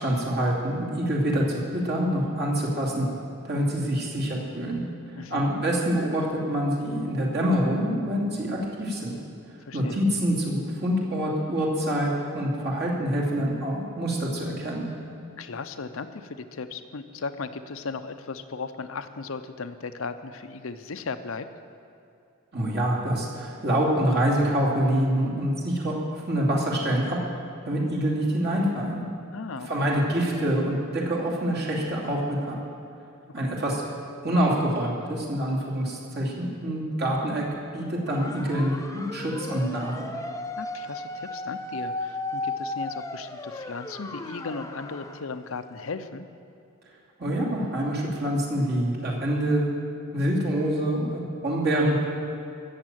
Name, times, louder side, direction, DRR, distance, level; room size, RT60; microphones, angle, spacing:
voice 1, 0.0-3.1 3.4-4.8 5.3-9.1 9.7-14.9 22.5-27.2 27.6-29.0 29.7-32.6 33.3-33.8 34.2-37.5 37.7-40.0 47.2-49.7 50.1-52.0, right 1 dB, 55° right, -3 dB, 2.7 m, -26 dB
voice 2, 5.2-5.5 9.6-10.0 15.4-21.5 29.3-29.9 33.4-33.5 40.6-46.3, left 4 dB, 75° left, 9 dB, 0.7 m, -36 dB
sound 1, 38.1-45.3, left 2 dB, 15° left, 0.6 m, -35 dB
14.0 x 7.5 x 9.0 m, 2.7 s
head